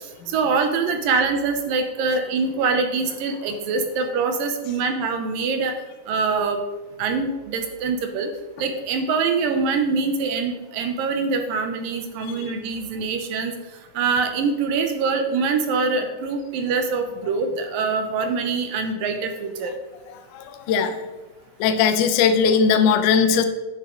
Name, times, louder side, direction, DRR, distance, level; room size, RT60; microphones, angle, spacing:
voice 1, 0.3-5.7 6.1-6.6 7.0-8.3 8.6-13.5 14.0-19.7, right 4 dB, 70° right, 6 dB, 2.4 m, -24 dB
voice 2, 20.3-20.9 21.6-23.4, left 6 dB, 75° left, 8 dB, 1.9 m, -19 dB
10.5 x 8.4 x 3.8 m, 1.1 s
omnidirectional pair, 4.5 m